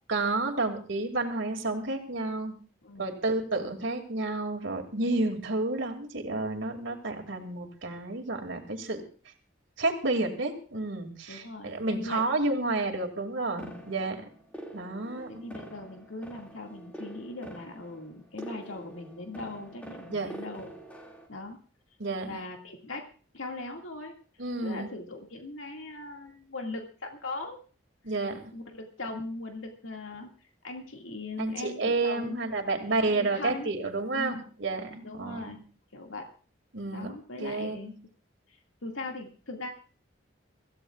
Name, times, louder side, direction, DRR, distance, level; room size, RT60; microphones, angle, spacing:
voice 1, 0.1-2.5 3.0-9.0 9.8-14.2 14.7-15.5 20.1-20.3 22.0-22.3 24.4-24.9 28.0-28.5 31.4-34.3 34.6-35.6 36.7-37.1 37.4-37.8, right 2 dB, 75° right, 3 dB, 2.5 m, -30 dB
voice 2, 11.3-12.2 15.3-20.7 21.3-21.6 22.3-23.0 23.3-24.2 24.6-27.6 28.5-30.3 30.6-32.4 32.9-33.7 34.2-34.4 35.0-35.6 35.9-36.3 36.9-37.9 38.5-39.7, left 2 dB, 85° left, 2 dB, 2.1 m, -39 dB
sound 1, 13.6-21.3, right 1 dB, 5° left, 2.3 m, -45 dB
25.0 x 15.5 x 2.4 m, 0.39 s
head